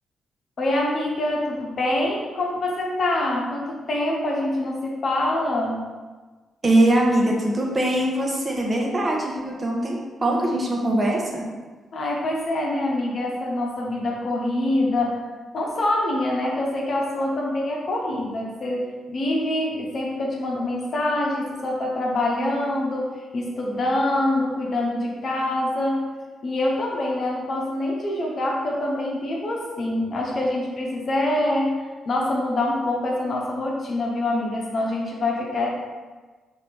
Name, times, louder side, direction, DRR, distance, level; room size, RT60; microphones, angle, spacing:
voice 1, 0.6-5.8 11.9-15.2 15.5-26.1 26.4-31.8 32.1-35.7, left 1 dB, 55° left, -1 dB, 0.8 m, -25 dB
voice 2, 6.6-11.5, right 1 dB, 35° right, -1 dB, 1.0 m, -22 dB
4.2 x 2.8 x 3.4 m, 1.3 s
hypercardioid pair, 40°, 0 cm